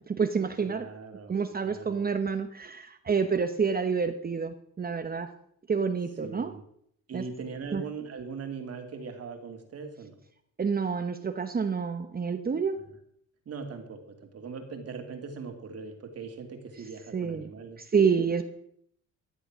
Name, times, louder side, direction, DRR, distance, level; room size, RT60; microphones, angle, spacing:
voice 1, 0.0-0.9 1.3-5.3 5.7-6.5 7.1-7.2 7.7-7.8 10.6-12.8 17.1-17.5 17.8-18.4, right 5 dB, 30° right, 8 dB, 0.9 m, -28 dB
voice 2, 0.6-2.0 6.2-6.6 7.1-10.1 13.5-17.8, right 5 dB, 55° right, 4 dB, 2.7 m, -40 dB
14.5 x 8.0 x 6.2 m, 0.68 s
cardioid pair, 90°, 30 cm